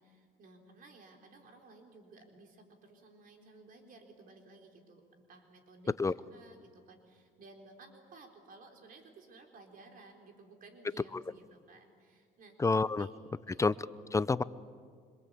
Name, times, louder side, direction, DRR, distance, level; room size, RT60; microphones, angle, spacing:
voice 1, 0.0-12.6 13.0-13.1 13.5-13.7, right 3 dB, 55° right, 3 dB, 4.0 m, -56 dB
voice 2, 12.6-13.1 13.6-14.4, left 3 dB, 20° left, 16 dB, 0.6 m, -29 dB
26.5 x 25.5 x 8.4 m, 2.1 s
cardioid pair, 110°, 17 cm